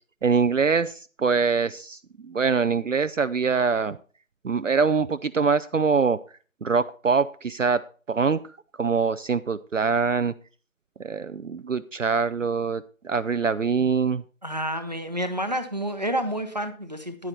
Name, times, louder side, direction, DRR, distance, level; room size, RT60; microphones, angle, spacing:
voice 1, 0.2-4.0 4.4-6.2 6.6-8.4 8.8-10.3 11.0-14.2, right 5 dB, 65° right, 12 dB, 0.6 m, -24 dB
voice 2, 14.4-17.3, equal, 30° right, 8 dB, 0.9 m, -29 dB
10.5 x 9.1 x 4.3 m, 0.39 s
figure-of-eight pair, 175°, 41 cm